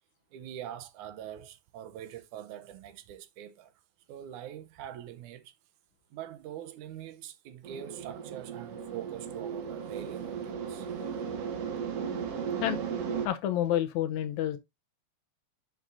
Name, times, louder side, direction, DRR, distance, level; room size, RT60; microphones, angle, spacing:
voice 1, 0.3-3.7 4.1-5.5 6.1-10.9, right 10 dB, 85° right, 2.3 m, -43 dB
sound 1, 7.6-13.3, right 7 dB, 60° right, 2.2 m, -36 dB
voice 2, 13.2-14.6, left 11 dB, 75° left, 2.2 m, -29 dB
9.7 x 6.4 x 2.7 m
omnidirectional pair, 3.4 m